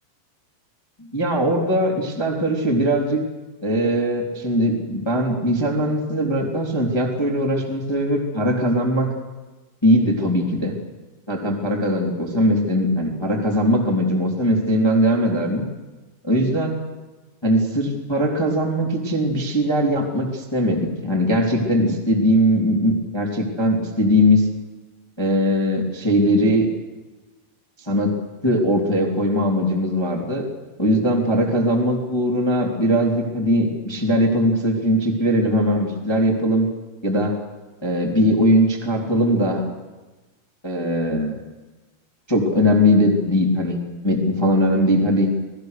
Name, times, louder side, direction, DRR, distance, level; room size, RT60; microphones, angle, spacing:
voice 1, 1.0-3.2 3.6-9.1 9.8-10.8 11.3-15.6 16.2-16.7 17.4-24.5 25.2-26.7 27.8-28.2 28.4-30.4 30.8-36.7 37.0-37.4 37.8-39.6 40.6-41.4 42.3-43.8 44.0-45.3, equal, 10° left, 0 dB, 2.0 m, -20 dB
28.0 x 19.5 x 6.7 m, 1.2 s
omnidirectional pair, 5.9 m